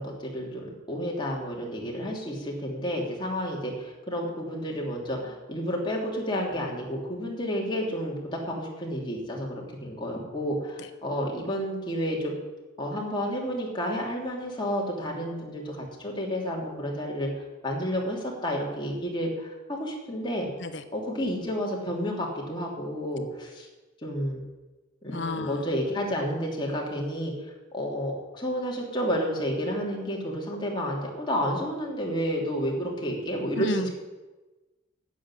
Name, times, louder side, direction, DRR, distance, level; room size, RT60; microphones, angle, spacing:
voice 1, 0.0-12.4 12.8-17.3 17.6-20.5 20.9-23.7 24.0-24.4 25.0-27.3 27.7-33.7, equal, 20° left, -2 dB, 2.9 m, -31 dB
voice 2, 25.1-25.7 33.6-33.9, left 1 dB, 60° left, 10 dB, 1.1 m, -31 dB
11.0 x 7.6 x 10.0 m, 1.2 s
head